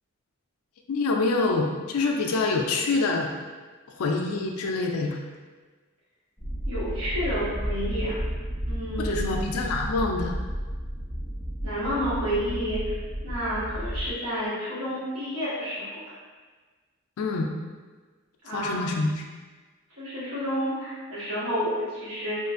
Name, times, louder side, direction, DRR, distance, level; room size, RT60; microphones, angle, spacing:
voice 1, 0.9-3.3 4.0-5.2 9.0-10.3 17.2-17.5 18.5-19.2, left 3 dB, 85° left, 2 dB, 0.4 m, -26 dB
sound 1, 6.4-14.1, equal, 15° right, 1.0 m, -32 dB
voice 2, 6.7-8.2 8.7-9.3 11.6-12.9 13.2-16.0 18.4-18.8 20.0-22.4, equal, 75° right, -10 dB, 1.3 m, -30 dB
2.9 x 2.4 x 2.4 m, 1.4 s
head